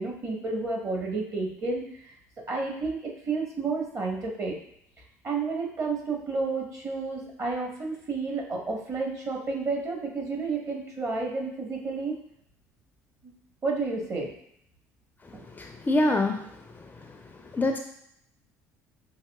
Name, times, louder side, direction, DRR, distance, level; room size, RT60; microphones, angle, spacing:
voice 1, 0.0-2.1 2.5-4.5 5.2-12.2 13.2-13.3 13.6-14.3 15.3-15.4, right 3 dB, 35° right, 0 dB, 1.3 m, -31 dB
voice 2, 15.6-16.4 17.5-17.8, left 2 dB, 20° left, 4 dB, 0.4 m, -24 dB
5.6 x 2.7 x 2.3 m, 0.71 s
hypercardioid pair, 60°, 8 cm